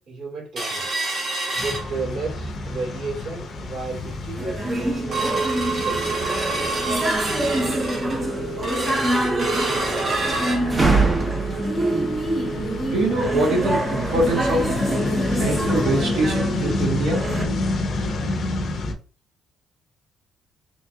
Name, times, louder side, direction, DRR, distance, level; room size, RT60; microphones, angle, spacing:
voice 1, 0.1-0.9 1.5-6.5, right 3 dB, 55° right, -3 dB, 2.1 m, -33 dB
sound 1, 0.6-2.4 2.8-2.9 3.3-3.6 4.1-4.2 4.5-15.1 15.4-15.5 15.9-16.0 16.6-16.7, right 3 dB, 35° right, 1.2 m, -29 dB
sound 2, 1.6-18.9, left 2 dB, 40° left, 0.6 m, -29 dB
sound 3, 4.4-17.5, right 2 dB, 15° right, 0.5 m, -25 dB
voice 2, 12.9-14.7 15.4-17.2, right 2 dB, 70° right, -1 dB, 1.7 m, -23 dB
3.7 x 3.3 x 2.6 m, 0.37 s
cardioid pair, 165°, 0 cm